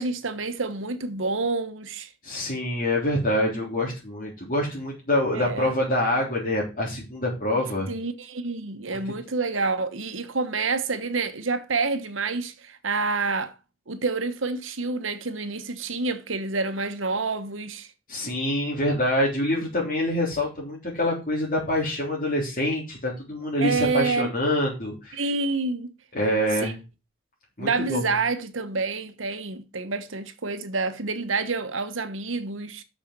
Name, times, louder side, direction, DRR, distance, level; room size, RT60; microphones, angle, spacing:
voice 1, 0.0-2.1 5.3-5.7 7.9-13.5 13.9-17.9 23.6-24.3 25.1-25.9 26.6-26.7 27.6-32.8, right 3 dB, 85° right, 1.3 m, -28 dB
voice 2, 2.2-7.9 8.9-9.0 18.1-25.2 26.1-26.8 27.6-28.1, left 1 dB, 45° left, 3.8 m, -26 dB
6.6 x 6.5 x 7.6 m
head